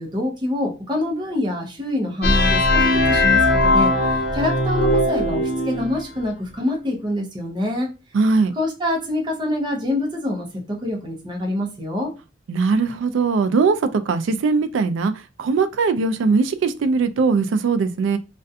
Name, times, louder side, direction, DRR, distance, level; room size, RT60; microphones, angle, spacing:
voice 1, 0.0-7.9 8.6-12.1, left 1 dB, 25° right, 0.6 m, -26 dB
sound 1, 2.2-6.0, left 2 dB, 55° left, 0.7 m, -19 dB
voice 2, 8.1-8.5 12.5-15.1 15.4-18.2, right 4 dB, 80° right, 0.3 m, -20 dB
2.4 x 2.2 x 2.6 m
head